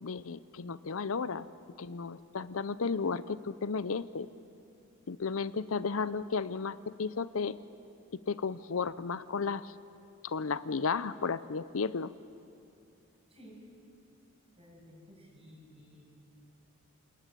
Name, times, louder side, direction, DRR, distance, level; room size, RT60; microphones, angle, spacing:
voice 1, 0.0-1.5 1.8-4.3 5.1-7.6 8.3-9.7 10.2-12.1, left 5 dB, 75° left, 15 dB, 0.6 m, -33 dB
voice 2, 14.6-16.0, equal, 25° right, -1 dB, 7.3 m, -54 dB
28.5 x 19.0 x 9.2 m, 2.6 s
head